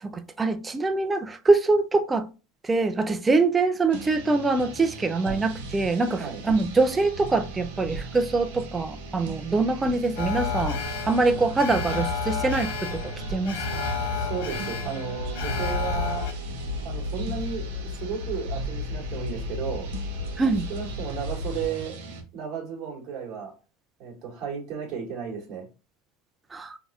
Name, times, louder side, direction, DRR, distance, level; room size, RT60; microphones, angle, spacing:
voice 1, 0.0-2.3 2.6-13.6 20.4-20.7 26.5-26.8, right 3 dB, 10° right, 0.3 m, -24 dB
sound 1, 3.9-22.2, right 3 dB, 85° right, 1.0 m, -38 dB
Alarm, 10.2-16.3, left 5 dB, 80° left, 0.9 m, -31 dB
voice 2, 14.1-16.3 16.8-19.9 20.4-23.5 24.0-25.7, right 7 dB, 45° right, 1.8 m, -34 dB
sound 2, 15.2-21.7, left 3 dB, 55° left, 1.0 m, -34 dB
5.1 x 2.7 x 2.3 m
supercardioid pair, 150°, 0 cm